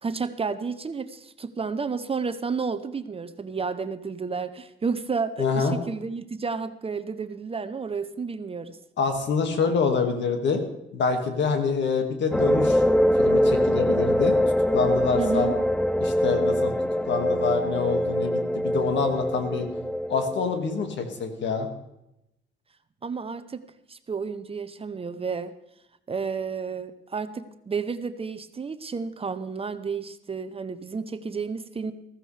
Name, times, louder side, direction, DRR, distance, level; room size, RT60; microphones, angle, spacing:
voice 1, 0.0-8.8 15.2-15.5 23.0-23.6 23.9-25.5 26.1-31.9, right 5 dB, 30° right, 11 dB, 0.7 m, -31 dB
voice 2, 5.4-5.8 9.0-10.6 10.9-12.8 13.2-14.4 14.7-15.5 16.0-16.7 17.1-19.7 20.1-21.7, left 5 dB, 65° left, 5 dB, 2.0 m, -26 dB
sound 1, 12.3-20.8, equal, 5° left, 0.4 m, -23 dB
15.0 x 14.0 x 3.3 m, 0.86 s
cardioid pair, 90°, 20 cm